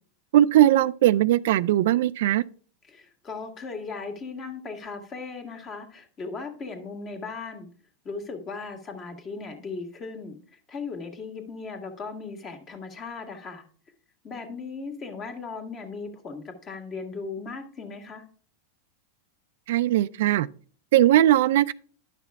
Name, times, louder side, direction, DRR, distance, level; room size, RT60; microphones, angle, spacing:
voice 1, 0.3-2.4 19.7-20.5 20.9-21.7, right 13 dB, 70° right, 0.3 m, -19 dB
voice 2, 2.8-7.7 8.0-13.6 14.2-18.2, left 4 dB, 30° left, 1.7 m, -37 dB
10.5 x 5.8 x 3.5 m
supercardioid pair, 130°, 0 cm